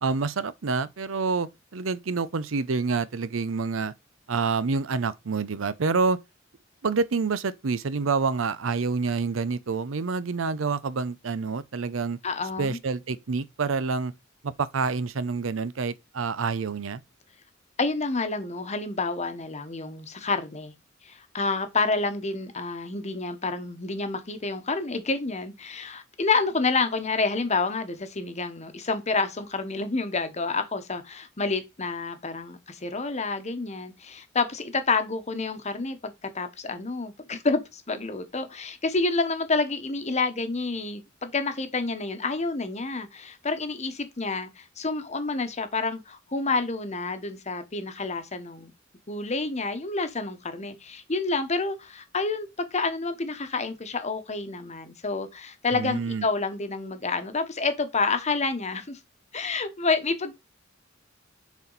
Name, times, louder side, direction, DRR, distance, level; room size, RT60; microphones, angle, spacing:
voice 1, 0.0-3.9 4.3-6.2 6.8-12.2 12.6-14.1 14.4-17.0 55.7-56.2, right 4 dB, 80° right, 0.6 m, -27 dB
voice 2, 12.2-12.8 17.8-20.7 21.0-48.7 49.1-59.0 59.3-60.3, left 3 dB, 35° left, 1.1 m, -29 dB
7.0 x 4.3 x 3.9 m
head